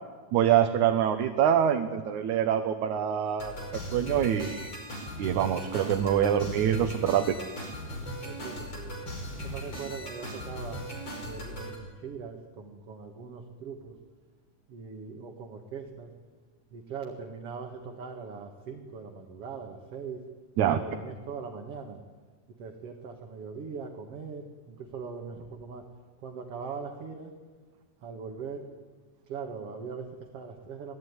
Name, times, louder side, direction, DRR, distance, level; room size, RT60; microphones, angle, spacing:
voice 1, 0.3-4.7 5.2-7.4 20.6-20.8, right 9 dB, 70° right, 6 dB, 2.4 m, -25 dB
sound 1, 3.4-11.8, equal, 35° left, 5.8 m, -38 dB
voice 2, 8.2-8.9 9.4-10.8 11.2-13.9 14.7-16.1 16.7-20.2 20.6-22.0 22.6-25.9 26.2-27.3 28.0-28.7 29.3-30.9, right 5 dB, 50° right, 2 dB, 2.6 m, -40 dB
28.0 x 19.0 x 9.7 m, 1.5 s
omnidirectional pair, 3.8 m